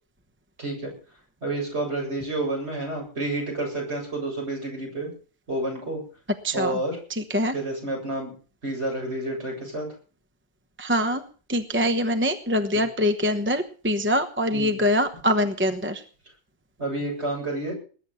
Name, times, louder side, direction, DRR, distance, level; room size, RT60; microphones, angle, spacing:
voice 1, 0.6-0.9 1.4-5.1 5.5-6.0 6.5-7.0 7.5-8.3 8.6-9.9 12.7-12.8 14.5-14.8 16.8-17.7, right 2 dB, 50° right, 0 dB, 8.0 m, -29 dB
voice 2, 6.4-6.8 7.3-7.5 10.8-11.2 11.5-16.0, equal, 10° right, 8 dB, 1.0 m, -24 dB
20.5 x 9.8 x 5.6 m, 0.40 s
omnidirectional pair, 1.4 m